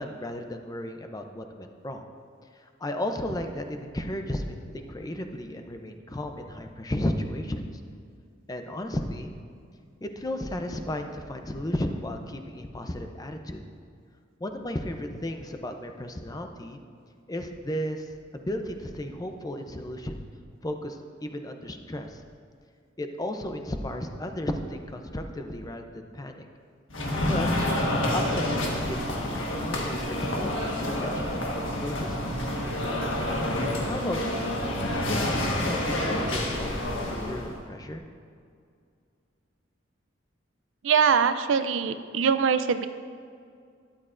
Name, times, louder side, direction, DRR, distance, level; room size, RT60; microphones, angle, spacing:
voice 1, 0.0-2.0 2.6-7.6 8.5-9.4 10.0-13.6 14.4-16.8 17.3-20.2 20.6-22.2 23.0-26.5 27.2-27.6 28.1-32.2 32.6-33.1 33.8-34.6 35.1-36.8 37.1-38.0, left 1 dB, 20° left, 5 dB, 0.6 m, -34 dB
sound 1, 26.9-37.6, left 1 dB, 90° left, 1.4 m, -28 dB
voice 2, 40.8-42.9, right 6 dB, 80° right, 11 dB, 0.4 m, -23 dB
12.5 x 11.0 x 2.6 m, 2.2 s
head